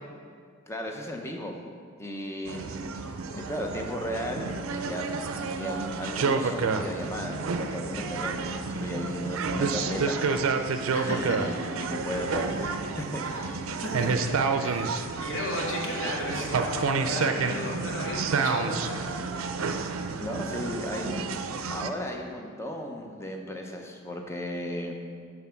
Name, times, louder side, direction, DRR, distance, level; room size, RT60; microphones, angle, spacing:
voice 1, 0.7-1.6 2.0-5.1 5.3-10.5 11.0-13.8 14.7-14.9 17.5-17.7 20.2-21.4 21.7-24.9, left 1 dB, 15° left, 2 dB, 0.6 m, -35 dB
sound 1, 2.5-21.9, right 4 dB, 90° right, 0.4 m, -30 dB
voice 2, 10.9-11.4 13.3-13.4 13.8-14.1 14.6-19.0 19.7-19.9, left 1 dB, 65° left, -3 dB, 1.7 m, -34 dB
8.1 x 3.8 x 5.7 m, 2.1 s
head